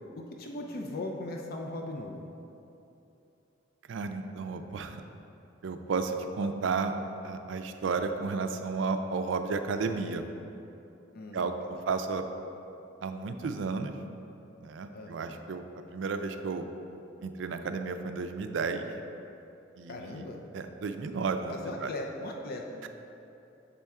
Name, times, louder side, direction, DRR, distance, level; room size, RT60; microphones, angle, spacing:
voice 1, 0.2-2.2 11.1-11.9 14.9-15.4 19.9-20.4 21.5-22.9, left 2 dB, 50° left, 1 dB, 0.4 m, -39 dB
voice 2, 3.9-5.0 5.6-6.9 7.2-10.2 11.3-11.6 11.9-12.2 13.0-13.9 14.6-15.6 15.9-16.7 17.2-18.9 19.8-20.2 20.5-21.9, right 4 dB, 70° right, 7 dB, 0.4 m, -32 dB
6.9 x 4.3 x 3.5 m, 2.9 s
head